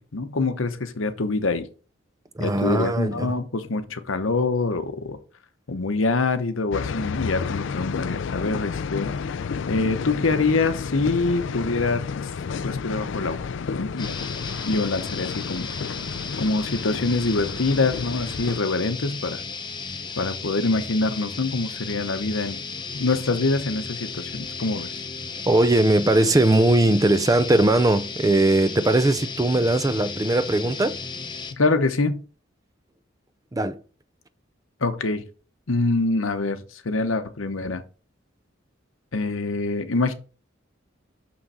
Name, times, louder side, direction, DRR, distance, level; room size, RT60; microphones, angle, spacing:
voice 1, 0.1-1.7 2.4-5.2 5.7-9.1 9.7-12.3 12.6-14.2 14.6-15.7 16.4-19.4 20.2-22.6 22.9-24.9 31.5-32.2 34.8-35.2 35.7-36.6 36.8-37.8 39.1-40.1, left 3 dB, 90° left, 0.9 m, -25 dB
voice 2, 2.4-3.3 25.5-31.0 33.5-33.8, right 2 dB, 20° right, 0.4 m, -20 dB
sound 1, 6.7-18.6, left 5 dB, 65° left, 0.4 m, -31 dB
sound 2, 14.0-31.5, left 4 dB, 25° left, 0.8 m, -35 dB
6.4 x 5.8 x 4.2 m
head